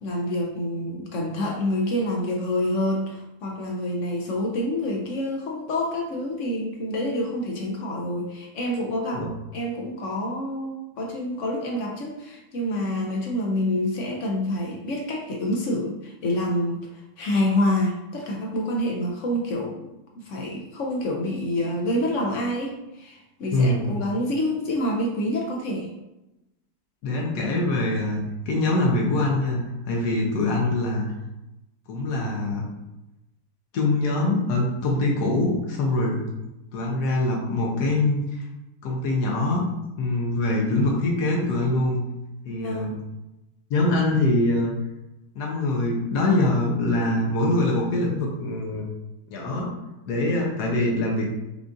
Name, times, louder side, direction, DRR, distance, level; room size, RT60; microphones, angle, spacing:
voice 1, 0.0-9.2 9.5-16.9 17.2-19.8 20.1-25.9 42.5-43.1, left 1 dB, 65° left, 0 dB, 0.8 m, -27 dB
voice 2, 23.5-23.9 27.0-31.0 31.9-32.6 33.7-36.2 36.7-38.5 38.8-39.7 40.0-42.0 42.4-42.9 43.7-44.7 45.3-48.9 49.3-49.7 50.1-51.3, left 2 dB, 85° left, -2 dB, 1.2 m, -23 dB
5.1 x 2.4 x 2.5 m, 0.95 s
omnidirectional pair, 1.7 m